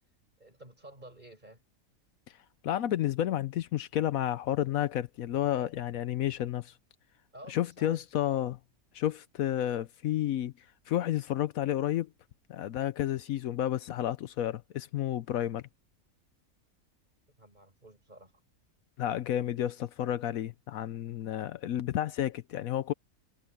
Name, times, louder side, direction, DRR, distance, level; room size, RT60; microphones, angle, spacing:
voice 1, 0.4-1.6 7.3-8.0 17.4-18.3, right 1 dB, 30° right, 6.8 m, -51 dB
voice 2, 2.6-6.7 7.5-8.6 8.9-10.5 10.9-12.1 12.5-15.6 19.0-22.9, left 12 dB, 75° left, 1.1 m, -31 dB
omnidirectional pair, 1.5 m